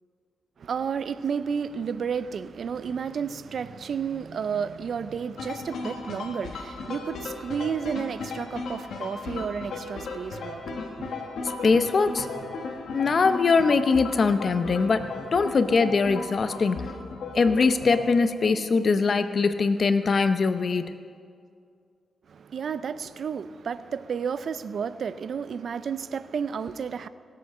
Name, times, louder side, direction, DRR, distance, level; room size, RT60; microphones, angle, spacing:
voice 1, 0.6-10.6 11.0-11.1 22.3-27.1, right 6 dB, 65° right, 14 dB, 0.5 m, -31 dB
sound 1, 5.4-18.1, left 3 dB, 80° left, 1.5 m, -36 dB
voice 2, 11.6-12.3 12.9-16.9 17.3-20.9, left 4 dB, 50° left, 11 dB, 0.7 m, -22 dB
17.0 x 8.3 x 6.6 m, 2.2 s
cardioid pair, 95°, 0 cm